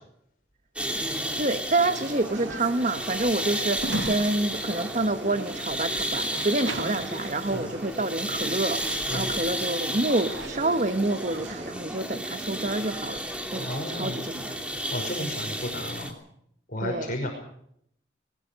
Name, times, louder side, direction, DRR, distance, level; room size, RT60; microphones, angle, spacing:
sound 1, 0.8-16.1, right 1 dB, 5° right, 2.9 m, -32 dB
voice 1, 1.0-14.6 16.8-17.1, right 2 dB, 40° right, 9 dB, 1.2 m, -28 dB
sound 2, 1.9-11.7, right 2 dB, 75° right, 2.0 m, -39 dB
voice 2, 13.5-14.3 14.9-16.1 16.7-17.3, left 1 dB, 45° left, 1 dB, 5.6 m, -33 dB
21.5 x 21.5 x 6.4 m, 0.68 s
head